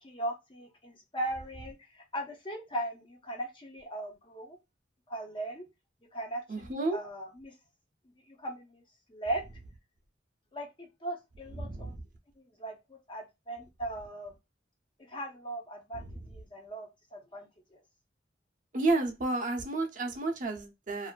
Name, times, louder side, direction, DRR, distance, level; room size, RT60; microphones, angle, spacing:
voice 1, 0.0-4.6 5.1-5.6 6.1-7.5 8.3-8.8 9.1-9.4 10.5-11.9 12.4-14.3 15.1-17.8, right 1 dB, 25° left, 0.5 m, -39 dB
voice 2, 6.5-7.0 11.6-11.9 15.9-16.1 18.7-21.1, right 2 dB, 45° right, 0.5 m, -31 dB
2.5 x 2.4 x 2.2 m
head